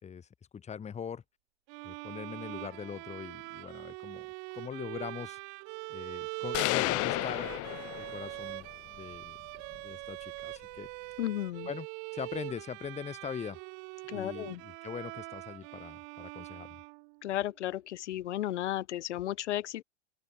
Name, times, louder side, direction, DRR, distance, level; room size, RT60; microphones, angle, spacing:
voice 1, 0.0-1.2 1.8-5.4 5.9-7.5 8.0-9.5 9.8-10.9 11.7-11.9 12.1-13.6 14.1-16.8, left 7 dB, 20° left, 3.4 m, -42 dB
sound 1, 1.7-17.3, right 39 dB, 50° right, 2.2 m, -43 dB
sound 2, 6.5-8.5, left 24 dB, 40° left, 1.9 m, -31 dB
voice 2, 11.2-11.7 14.1-14.6 17.2-19.8, left 13 dB, 75° left, 2.3 m, -34 dB
open air
hypercardioid pair, 130°, 35 cm